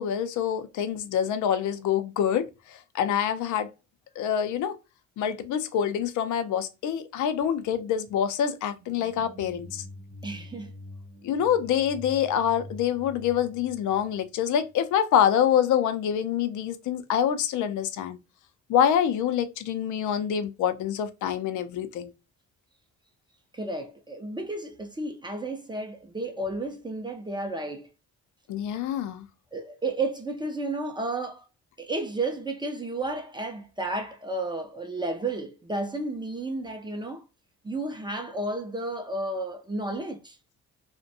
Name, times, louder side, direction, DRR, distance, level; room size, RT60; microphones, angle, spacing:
voice 1, 0.0-3.7 4.2-4.8 5.2-9.8 11.2-18.2 18.7-22.1 28.5-29.3, left 9 dB, 75° left, 0.5 m, -26 dB
sound 1, 8.7-14.7, left 1 dB, 35° right, 0.9 m, -45 dB
voice 2, 10.2-10.7 23.5-27.9 29.5-31.5 31.8-37.3 37.6-40.4, right 2 dB, 15° right, 0.4 m, -32 dB
2.5 x 2.1 x 2.6 m
cardioid pair, 90°, 30 cm